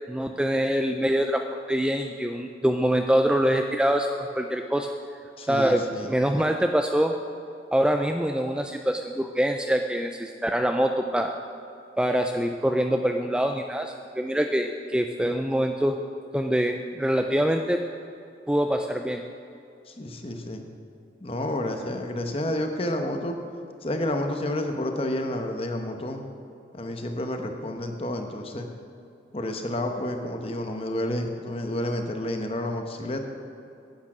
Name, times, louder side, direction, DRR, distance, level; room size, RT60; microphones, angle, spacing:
voice 1, 0.1-4.9 5.5-7.1 7.7-11.3 12.0-16.0 16.3-17.8 18.5-19.2, equal, 5° right, 4 dB, 0.3 m, -24 dB
voice 2, 5.4-6.1 19.9-20.6 21.2-23.4 23.8-26.2 26.7-28.7 29.3-33.2, left 1 dB, 35° left, 5 dB, 0.9 m, -30 dB
10.5 x 8.4 x 6.1 m, 2.6 s
head